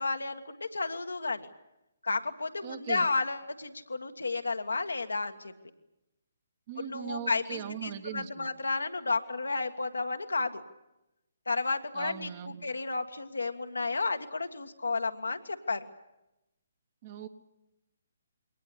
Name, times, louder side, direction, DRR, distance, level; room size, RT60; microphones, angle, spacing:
voice 1, 0.0-1.5 2.0-5.5 6.8-10.6 11.5-15.9, left 3 dB, 70° left, 6 dB, 1.7 m, -32 dB
voice 2, 2.6-3.1 6.7-8.5 11.9-12.7 17.0-17.3, right 10 dB, 35° right, 9 dB, 1.5 m, -40 dB
22.5 x 18.5 x 9.9 m, 0.95 s
figure-of-eight pair, 135°, 0 cm